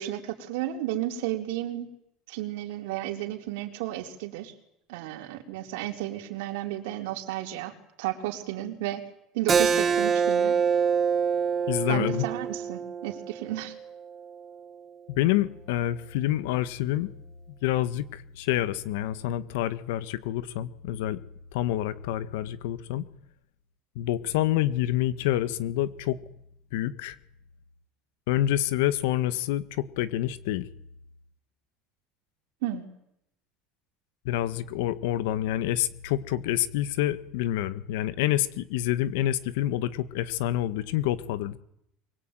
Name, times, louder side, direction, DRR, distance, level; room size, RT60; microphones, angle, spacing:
voice 1, 0.0-1.9 2.3-4.5 4.9-7.7 8.0-9.0 9.3-10.6 11.9-13.7 32.6-32.8, right 14 dB, 85° right, 4 dB, 4.2 m, -33 dB
Keyboard (musical), 9.5-14.7, right 6 dB, 20° right, 1.5 m, -26 dB
voice 2, 11.7-12.3 15.1-17.1 17.6-21.2 21.5-23.1 24.0-26.2 26.7-27.2 28.3-30.7 34.3-41.6, left 13 dB, 90° left, 15 dB, 1.7 m, -27 dB
24.0 x 22.5 x 9.3 m, 0.77 s
cardioid pair, 165°, 0 cm